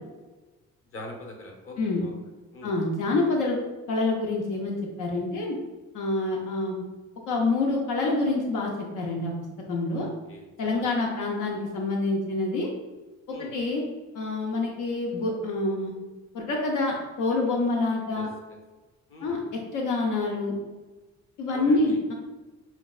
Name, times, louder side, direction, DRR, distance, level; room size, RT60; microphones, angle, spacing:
voice 1, 0.9-2.2 2.5-2.7 9.9-10.5 10.8-10.9 13.3-13.5 18.1-18.2 19.1-19.4 21.5-22.0, left 1 dB, 45° left, 1 dB, 0.9 m, -42 dB
voice 2, 2.6-3.6 3.9-5.6 5.9-6.9 7.3-9.3 9.7-10.1 10.6-12.7 13.4-13.8 14.1-15.9 16.3-18.3 19.2-20.6 21.4-22.1, left 2 dB, 80° left, 0 dB, 0.7 m, -27 dB
5.7 x 2.2 x 2.3 m, 1.2 s
cardioid pair, 90°, 30 cm